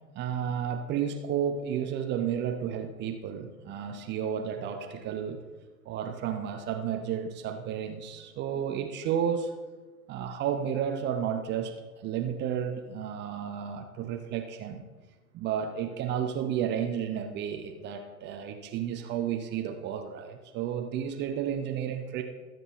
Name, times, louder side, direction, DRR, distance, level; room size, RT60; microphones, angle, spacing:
voice 1, 0.1-5.4 5.8-9.5 10.1-14.8 15.3-22.2, right 8 dB, 25° right, 5 dB, 0.8 m, -32 dB
20.5 x 7.7 x 3.1 m, 1.3 s
figure-of-eight pair, 95°, 45 cm